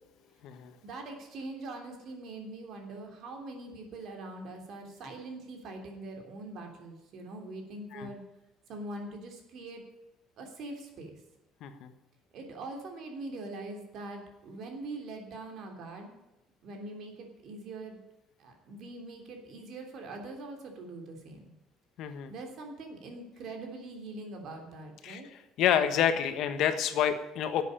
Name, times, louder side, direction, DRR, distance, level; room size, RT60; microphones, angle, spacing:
voice 1, 0.8-8.2 8.7-9.8 10.4-11.2 12.3-16.1 16.6-18.0 18.4-21.5 22.3-25.3, right 2 dB, 50° right, 3 dB, 3.3 m, -43 dB
voice 2, 22.0-22.3 25.0-25.2 25.6-27.6, left 9 dB, 60° left, 9 dB, 1.3 m, -28 dB
12.0 x 8.1 x 8.6 m, 0.94 s
cardioid pair, 155°, 0 cm